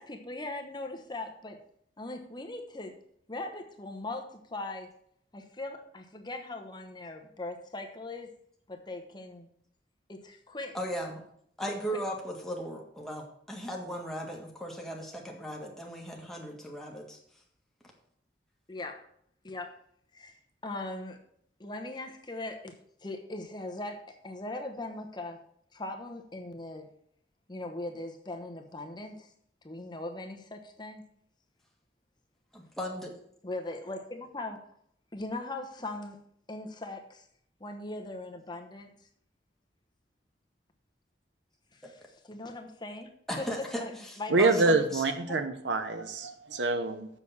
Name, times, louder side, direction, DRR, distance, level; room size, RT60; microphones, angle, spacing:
voice 1, 0.0-1.6 2.0-2.9 3.3-4.9 5.3-8.3 8.7-9.5 10.1-10.8 11.9-12.0 18.7-19.0 19.4-19.7 20.1-20.4 20.6-21.2 21.6-22.8 23.0-25.4 25.7-26.9 27.5-29.3 29.6-31.0 33.4-34.6 35.1-36.2 36.5-37.2 37.6-38.9 41.8-43.1 43.4-43.5 43.8-44.3 45.3-45.4, left 2 dB, 25° left, 4 dB, 1.0 m, -40 dB
voice 2, 10.7-11.2 11.6-17.2 32.5-33.1 41.8-41.9 43.3-45.0, equal, ahead, -1 dB, 1.8 m, -37 dB
voice 3, 44.3-47.1, right 3 dB, 90° right, 9 dB, 1.0 m, -26 dB
7.0 x 6.6 x 7.1 m, 0.68 s
head